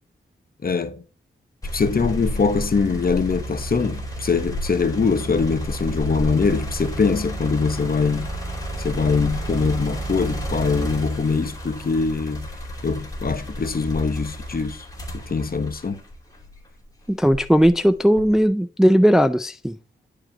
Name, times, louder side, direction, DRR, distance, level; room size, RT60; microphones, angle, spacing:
voice 1, 0.6-1.0 1.7-8.3 8.8-12.5 12.8-14.9 15.1-16.0, left 4 dB, 45° left, 0.9 m, -23 dB
sound 1, 1.6-16.7 17.2-18.5, equal, 15° left, 2.9 m, -31 dB
voice 2, 17.1-19.8, equal, ahead, 0.4 m, -17 dB
10.5 x 4.8 x 2.8 m
cardioid pair, 65°, 21 cm